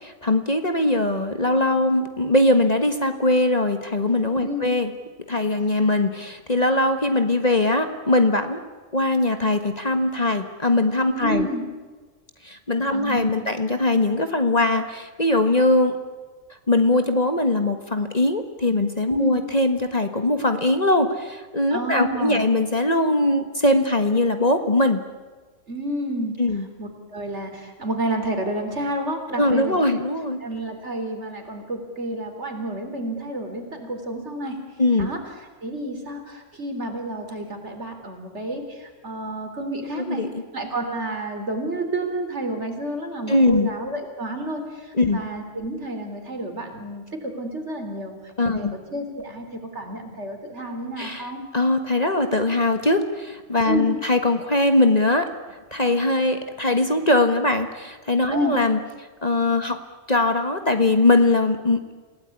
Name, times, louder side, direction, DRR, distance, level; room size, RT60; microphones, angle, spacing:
voice 1, 0.0-4.9 5.3-8.6 8.9-11.5 12.4-16.0 16.7-25.0 26.4-26.7 29.4-30.4 34.8-35.1 40.1-40.3 43.3-43.7 44.9-45.2 48.4-48.7 51.0-51.3 51.5-55.3 55.7-58.8 59.2-59.8 60.1-61.8, left 2 dB, 30° left, 7 dB, 1.6 m, -21 dB
voice 2, 11.1-11.6 12.9-13.5 19.2-19.4 21.7-22.4 25.7-26.4 26.8-29.9 30.4-34.6 35.0-35.2 35.6-40.2 40.5-48.1 48.5-51.4 53.7-53.9 58.3-58.6, right 1 dB, 60° right, 5 dB, 4.1 m, -30 dB
28.5 x 17.0 x 9.8 m, 1.3 s
omnidirectional pair, 1.3 m